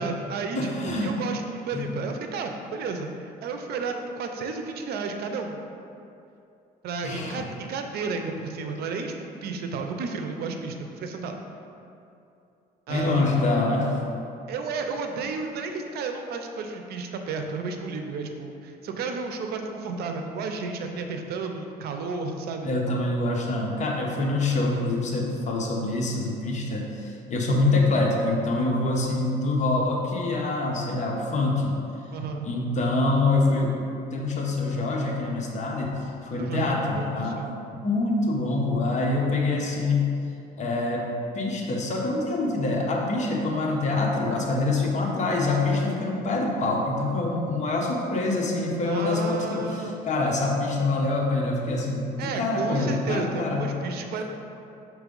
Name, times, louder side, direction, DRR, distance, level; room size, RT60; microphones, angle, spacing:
voice 1, 0.0-5.6 6.8-11.3 12.9-13.2 14.5-22.7 32.1-32.5 36.4-37.5 39.4-39.9 48.8-50.1 52.2-54.2, right 4 dB, 70° right, 5 dB, 0.6 m, -32 dB
voice 2, 0.5-1.1 1.7-1.9 7.0-7.4 12.9-14.0 22.6-31.8 32.4-33.8 34.1-37.6 37.8-40.1 40.6-41.1 41.3-53.7, left 2 dB, 45° left, -1 dB, 1.0 m, -25 dB
6.1 x 3.2 x 5.3 m, 2.7 s
cardioid pair, 110°, 17 cm